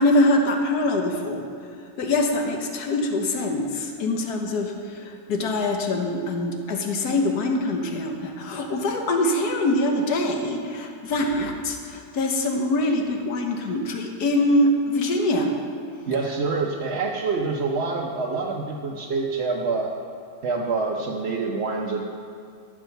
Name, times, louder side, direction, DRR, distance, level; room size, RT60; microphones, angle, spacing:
voice 1, 0.0-1.4 2.0-15.5, left 1 dB, 85° left, 3 dB, 1.6 m, -24 dB
voice 2, 16.1-19.9 20.4-22.0, right 4 dB, 50° right, -2 dB, 1.0 m, -26 dB
13.5 x 6.3 x 6.7 m, 2.3 s
omnidirectional pair, 1.6 m